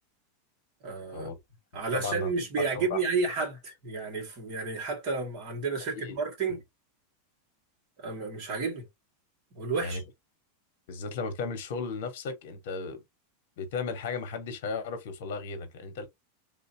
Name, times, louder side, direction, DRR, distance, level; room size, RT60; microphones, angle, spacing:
voice 1, 0.8-1.3 1.7-6.6 8.0-8.8 9.5-10.0, right 4 dB, 35° right, 2.0 m, -31 dB
voice 2, 1.7-2.3 2.6-3.0 5.9-6.2 9.8-10.0 10.9-13.0 13.6-16.1, left 4 dB, 60° left, 1.3 m, -35 dB
3.8 x 2.7 x 2.8 m
supercardioid pair, 170°, 0 cm